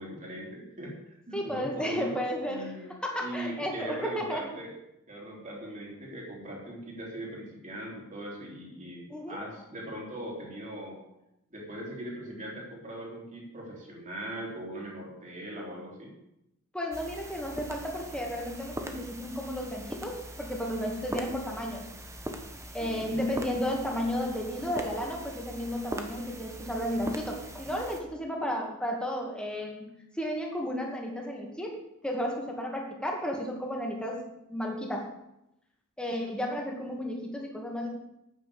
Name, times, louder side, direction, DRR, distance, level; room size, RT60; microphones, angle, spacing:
voice 1, 0.0-2.1 2.5-2.9 3.2-4.7 5.1-11.0 11.5-16.1 22.8-23.2, right 1 dB, 35° right, -3 dB, 3.5 m, -40 dB
voice 2, 1.3-2.7 3.0-4.5 9.1-9.4 16.7-21.9 22.7-29.9 30.1-31.8 32.0-34.2 34.5-35.1 36.0-37.9, equal, 5° left, 0 dB, 2.2 m, -33 dB
sound 1, 16.9-28.0, right 1 dB, 15° right, 1.1 m, -41 dB
9.4 x 8.8 x 7.0 m, 0.86 s
head